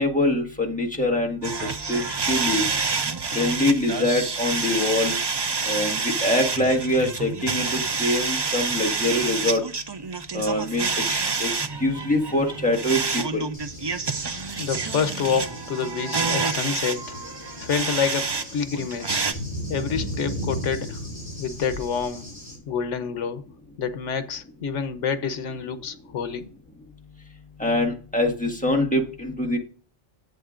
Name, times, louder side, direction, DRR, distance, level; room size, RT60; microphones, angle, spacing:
voice 1, 0.0-2.6 3.3-5.2 5.6-9.6 10.3-11.5 11.8-13.4 27.6-29.6, left 1 dB, 5° left, 1.4 m, -24 dB
sound 1, 1.4-18.4 18.7-19.3, right 4 dB, 40° right, 0.4 m, -28 dB
Cricket / Thunder, 13.5-22.6, equal, 30° left, 4.0 m, -36 dB
voice 2, 14.6-17.2 17.6-19.3 19.7-21.0 21.4-22.3 22.7-23.4 23.8-26.5, left 6 dB, 90° left, 1.2 m, -27 dB
10.5 x 7.9 x 2.5 m
omnidirectional pair, 1.2 m